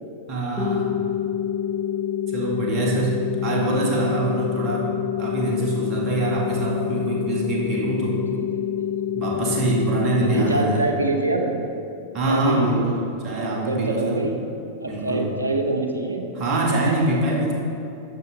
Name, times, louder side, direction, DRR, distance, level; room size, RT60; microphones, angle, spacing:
voice 1, 0.3-1.0 2.3-3.2 3.4-4.9 5.2-8.2 9.1-10.8 12.1-13.0 13.2-14.2 14.8-15.4 16.3-17.5, right 2 dB, 35° right, -3 dB, 2.1 m, -24 dB
sound 1, 0.6-10.6, left 9 dB, 15° left, 1.2 m, -27 dB
voice 2, 8.1-8.9 10.2-11.5 12.3-12.9 13.3-14.4 14.8-16.3 16.7-17.0, right 2 dB, 80° right, 4 dB, 1.0 m, -26 dB
10.5 x 7.7 x 3.9 m, 2.7 s
figure-of-eight pair, 90°, 0 cm